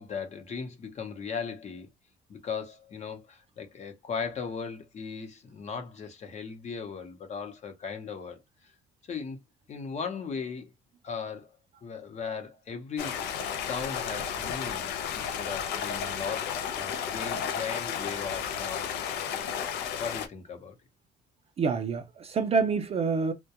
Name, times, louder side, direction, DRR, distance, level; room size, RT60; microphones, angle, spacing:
voice 1, 0.0-1.9 2.3-8.7 9.1-9.4 9.7-10.7 11.0-11.5 11.8-13.2 13.6-19.1 20.0-20.8, left 5 dB, 40° left, 0.8 m, -37 dB
Stream, 13.0-20.3, left 8 dB, 75° left, 0.5 m, -33 dB
voice 2, 21.6-23.3, right 5 dB, 35° right, 0.5 m, -27 dB
2.3 x 2.2 x 2.8 m
cardioid pair, 110°, 17 cm